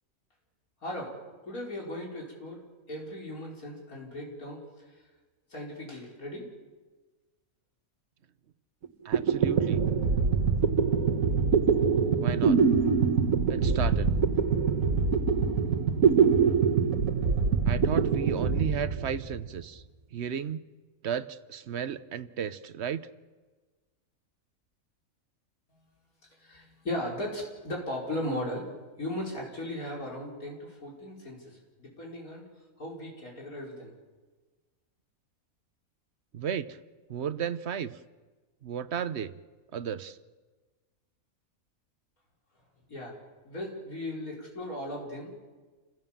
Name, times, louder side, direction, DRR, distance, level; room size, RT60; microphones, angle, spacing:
voice 1, 1.4-2.6 2.9-4.6 5.5-6.5 26.4-28.7 29.0-32.4 32.8-33.9 42.9-43.1 43.5-45.4, left 1 dB, 90° left, -2 dB, 5.4 m, -37 dB
sound 1, 8.8-8.9 9.1-19.6, right 6 dB, 75° right, 1.7 m, -24 dB
voice 2, 9.0-9.8 12.2-12.6 13.5-14.1 17.6-19.8 20.1-20.6 21.0-23.0 36.3-36.8 37.1-37.9 38.6-39.3 39.7-40.2, right 8 dB, 55° right, 13 dB, 1.0 m, -33 dB
29.0 x 16.5 x 7.4 m, 1.3 s
omnidirectional pair, 1.5 m